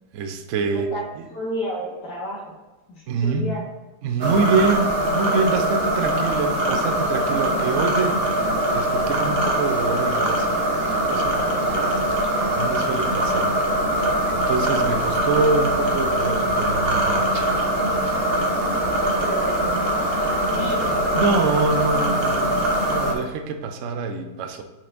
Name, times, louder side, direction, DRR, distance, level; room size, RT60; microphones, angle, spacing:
voice 1, 0.1-0.9 3.1-3.6 4.0-8.3 8.7-12.3 12.6-13.6 13.9-17.6 17.9-18.2 21.1-24.6, right 4 dB, 90° right, 6 dB, 0.6 m, -26 dB
voice 2, 1.3-2.6 2.9-3.6 12.3-12.8 19.2-21.7, equal, 60° left, -6 dB, 1.6 m, -33 dB
sound 1, 4.2-23.1, right 1 dB, 45° right, 0.8 m, -22 dB
Gurgling / Liquid, 10.9-23.4, right 3 dB, 75° right, 1.6 m, -40 dB
8.3 x 4.3 x 2.6 m, 1.2 s
omnidirectional pair, 2.1 m